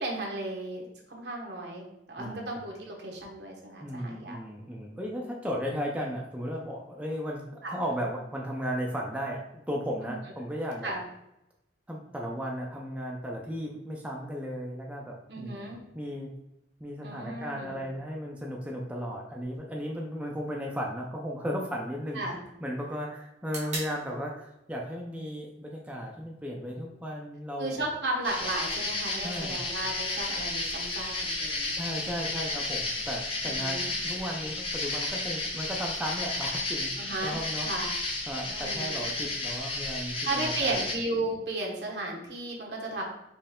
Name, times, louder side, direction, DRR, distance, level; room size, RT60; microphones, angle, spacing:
voice 1, 0.0-4.4 7.6-7.7 10.0-10.1 10.8-11.0 15.3-15.8 17.0-17.8 22.1-22.4 27.6-31.8 33.4-33.9 37.0-37.4 37.6-37.9 38.5-39.0 40.2-43.0, right 2 dB, 65° right, -1 dB, 1.1 m, -34 dB
voice 2, 3.8-10.9 11.9-15.7 15.9-16.3 16.8-22.3 22.6-27.8 29.2-29.6 31.7-36.9 37.2-37.7 38.3-40.9, equal, 5° right, -1 dB, 0.5 m, -35 dB
sound 1, 19.4-27.4, right 2 dB, 40° right, 1.6 m, -47 dB
sound 2, 28.2-40.9, left 2 dB, 30° left, 0.8 m, -32 dB
4.3 x 3.2 x 3.6 m, 0.86 s
head